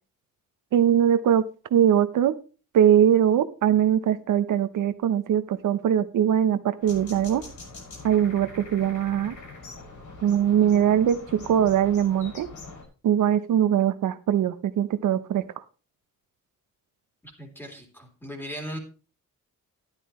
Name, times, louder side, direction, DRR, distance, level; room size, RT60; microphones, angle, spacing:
voice 1, 0.7-2.3 2.7-7.4 8.0-9.3 10.2-12.5 13.0-15.4, right 9 dB, 70° right, 11 dB, 0.9 m, -21 dB
sound 1, 6.8-12.8, left 3 dB, 65° left, 6.5 m, -43 dB
voice 2, 17.2-18.8, equal, 5° left, 3 dB, 3.5 m, -38 dB
14.0 x 11.5 x 3.2 m, 0.35 s
wide cardioid pair, 180°, 32 cm